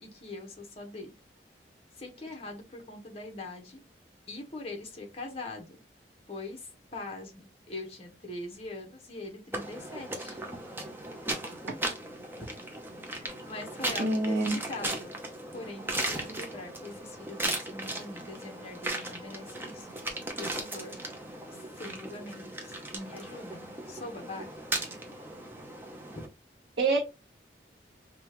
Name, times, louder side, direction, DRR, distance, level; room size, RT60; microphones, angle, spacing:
voice 1, 0.0-1.2 1.9-3.8 4.3-5.8 6.3-10.4 12.5-12.6 13.1-15.1 15.5-20.9 21.5-24.5, left 2 dB, 35° left, 2 dB, 1.1 m, -42 dB
sound 1, 9.5-26.3, right 1 dB, 10° right, 0.7 m, -37 dB
voice 2, 14.0-14.6 26.8-27.0, right 2 dB, 90° right, -3 dB, 1.1 m, -26 dB
5.3 x 2.4 x 3.0 m, 0.26 s
head